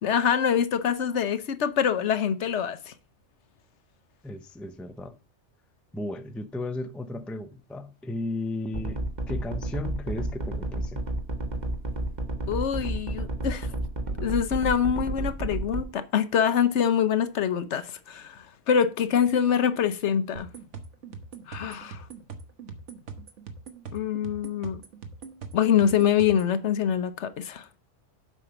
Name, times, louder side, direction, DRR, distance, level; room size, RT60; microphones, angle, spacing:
voice 1, 0.0-2.9 12.5-13.7 14.2-20.5 21.5-22.0 23.9-24.8 25.5-27.6, left 8 dB, 70° left, 1.1 m, -25 dB
voice 2, 4.2-5.2 5.9-11.0, left 2 dB, ahead, 0.4 m, -35 dB
sound 1, 8.7-15.8, right 2 dB, 35° right, 1.4 m, -30 dB
sound 2, 20.4-26.5, right 5 dB, 70° right, 1.5 m, -42 dB
8.1 x 5.6 x 5.9 m
omnidirectional pair, 1.3 m